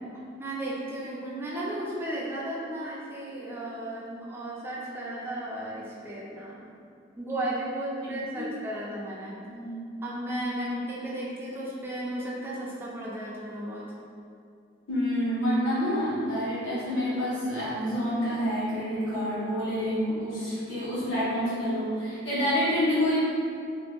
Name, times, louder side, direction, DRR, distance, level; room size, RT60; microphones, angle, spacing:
voice 1, 0.4-6.6 7.2-9.4 10.0-13.9, right 1 dB, 10° right, -6 dB, 0.3 m, -34 dB
voice 2, 9.5-9.8 14.9-23.2, equal, 75° left, -10 dB, 1.2 m, -28 dB
2.6 x 2.2 x 2.4 m, 2.4 s
head